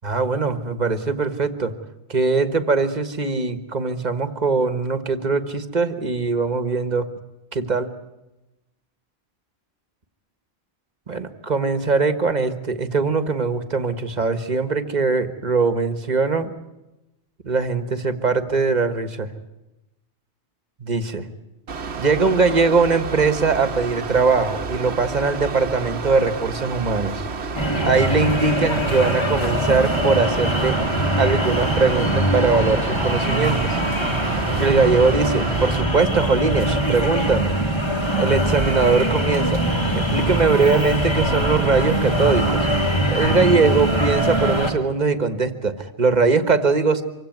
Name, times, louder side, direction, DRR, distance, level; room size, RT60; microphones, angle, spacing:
voice 1, 0.0-1.7 2.1-7.1 7.5-7.9 11.1-16.5 17.4-19.3 20.8-21.2 22.0-27.2 27.8-30.8 31.2-33.8 34.6-37.6 38.2-39.6 39.9-42.7 43.1-47.0, right 4 dB, 40° right, 11 dB, 1.5 m, -21 dB
Mechanical fan, 21.7-35.8, right 4 dB, 75° right, 1.4 m, -31 dB
sound 1, 27.5-44.7, right 1 dB, 25° left, 2.4 m, -22 dB
25.0 x 16.5 x 9.4 m, 0.97 s
omnidirectional pair, 1.1 m